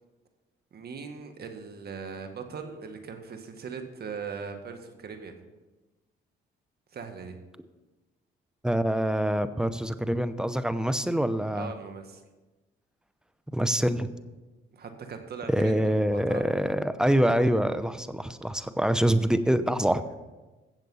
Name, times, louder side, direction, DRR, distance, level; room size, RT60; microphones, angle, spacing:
voice 1, 0.7-5.3 6.9-7.4 11.5-12.2 14.7-16.4, right 5 dB, 50° right, 6 dB, 1.8 m, -40 dB
voice 2, 8.6-11.7 13.5-14.1 15.5-20.1, equal, 5° right, 12 dB, 0.8 m, -25 dB
15.5 x 7.5 x 5.6 m, 1.2 s
cardioid pair, 90°, 20 cm